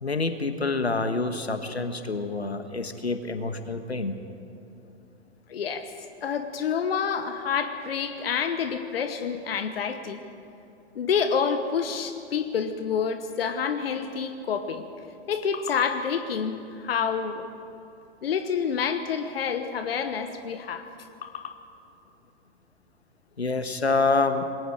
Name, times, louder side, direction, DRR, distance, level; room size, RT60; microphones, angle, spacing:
voice 1, 0.0-4.2 23.4-24.4, left 3 dB, 85° left, 9 dB, 1.4 m, -27 dB
voice 2, 5.5-5.9 6.2-10.2 10.9-14.8 15.3-17.5 18.2-20.9 21.2-21.6, left 6 dB, 65° left, 9 dB, 1.2 m, -28 dB
26.5 x 21.5 x 4.8 m, 2.7 s
figure-of-eight pair, 105°, 31 cm